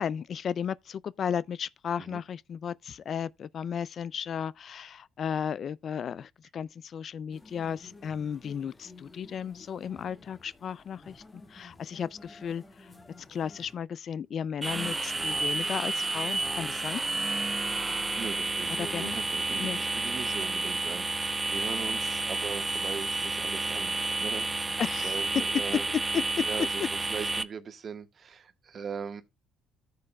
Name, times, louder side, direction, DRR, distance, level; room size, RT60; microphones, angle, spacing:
voice 1, 0.0-11.2 11.5-12.6 13.3-17.0 18.8-19.1 19.6-19.8 24.8-25.1, left 7 dB, 55° left, 0.3 m, -34 dB
sound 1, 7.3-13.8, left 2 dB, 25° left, 1.7 m, -52 dB
sound 2, 14.6-27.4, right 3 dB, 20° right, 0.7 m, -30 dB
voice 2, 18.2-26.0 26.4-29.2, right 6 dB, 45° right, 1.4 m, -40 dB
14.0 x 6.5 x 2.2 m
supercardioid pair, 80°, 0 cm